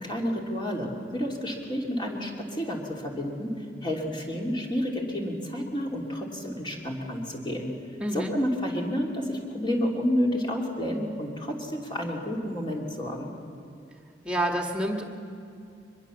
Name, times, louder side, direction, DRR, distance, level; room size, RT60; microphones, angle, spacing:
voice 1, 0.0-3.5 3.8-7.7 8.1-13.3, equal, 25° left, 0 dB, 3.1 m, -30 dB
voice 2, 8.0-8.3 14.2-15.0, right 1 dB, 5° right, 3 dB, 1.9 m, -28 dB
23.0 x 21.5 x 7.2 m, 2.6 s
head